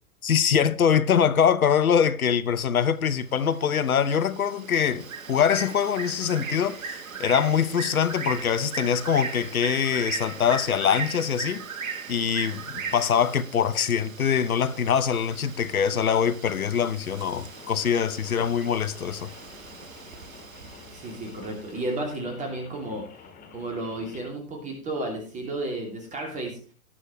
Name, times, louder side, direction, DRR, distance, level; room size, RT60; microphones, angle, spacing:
voice 1, 0.2-11.6 12.1-19.3, left 7 dB, 75° left, 0.9 m, -23 dB
Bird, 3.0-21.8, right 5 dB, 65° right, 1.4 m, -39 dB
Rain, 17.4-24.2, left 5 dB, 20° left, 2.0 m, -49 dB
voice 2, 20.9-23.0 23.5-26.6, right 2 dB, 15° right, 2.8 m, -32 dB
18.5 x 6.4 x 3.2 m
figure-of-eight pair, 115°, 43 cm